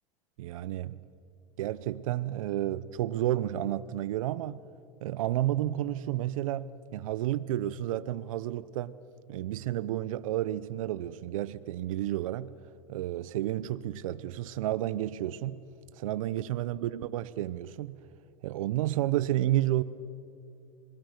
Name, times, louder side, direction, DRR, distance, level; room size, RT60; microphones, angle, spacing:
voice 1, 0.4-1.0 1.6-4.6 5.0-8.9 9.3-12.5 12.9-15.6 16.0-18.0 18.4-19.8, right 13 dB, 75° right, 0.7 m, -31 dB
26.5 x 20.0 x 6.6 m
supercardioid pair, 120°, 17 cm